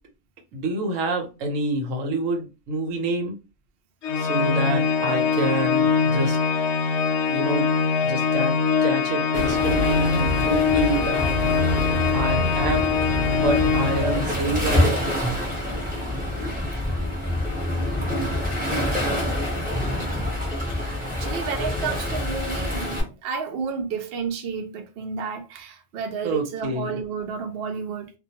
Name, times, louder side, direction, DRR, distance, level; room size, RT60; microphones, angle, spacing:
voice 1, 0.5-3.4 4.2-6.4 7.3-7.7 8.0-11.3 12.1-15.1 26.2-27.0, right 2 dB, 90° right, 1.1 m, -27 dB
Organ, 4.0-14.6, left 5 dB, 70° left, 0.8 m, -23 dB
Waves surf, 9.3-23.0, left 1 dB, 10° right, 0.7 m, -26 dB
voice 2, 21.2-28.1, right 5 dB, 60° right, 0.7 m, -31 dB
2.3 x 2.2 x 2.8 m
omnidirectional pair, 1.3 m